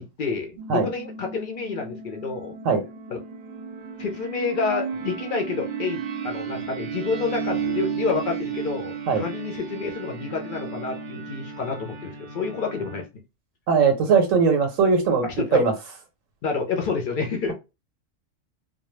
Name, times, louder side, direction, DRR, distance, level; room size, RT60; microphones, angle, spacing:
voice 1, 0.0-2.5 3.1-3.2 4.0-13.0 15.2-15.7 16.4-17.5, left 4 dB, 60° left, 0.5 m, -29 dB
sound 1, 0.6-13.0, right 6 dB, 60° right, 0.6 m, -34 dB
voice 2, 13.7-15.3 15.5-15.7, right 5 dB, 90° right, 1.0 m, -19 dB
2.2 x 2.1 x 3.0 m
omnidirectional pair, 1.3 m